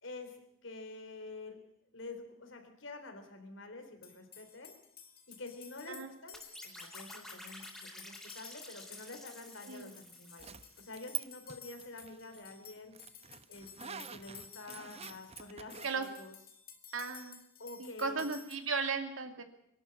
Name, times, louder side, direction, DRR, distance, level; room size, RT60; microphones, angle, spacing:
voice 1, 0.0-1.6 1.9-4.8 5.3-13.0 13.5-16.3 17.6-18.2, left 2 dB, 70° left, 6 dB, 3.5 m, -48 dB
sound 1, 4.0-18.6, left 8 dB, 50° left, 2.4 m, -54 dB
sound 2, 6.3-11.1, equal, ahead, 4.0 m, -51 dB
Zipper (clothing), 10.4-11.2 11.5-15.9, right 9 dB, 30° right, 0.8 m, -45 dB
voice 2, 16.9-17.4 17.8-19.4, right 4 dB, 80° right, 7 dB, 2.4 m, -36 dB
23.0 x 12.5 x 9.8 m, 0.76 s
head